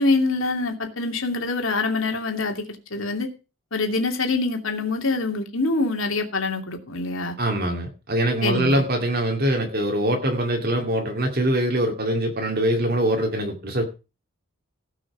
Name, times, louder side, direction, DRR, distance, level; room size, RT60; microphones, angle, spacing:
voice 1, 0.0-3.3 3.7-7.4 8.4-8.8, left 3 dB, 75° left, 2.7 m, -25 dB
voice 2, 7.4-13.8, right 1 dB, 45° right, 2.4 m, -23 dB
17.5 x 6.2 x 5.9 m
head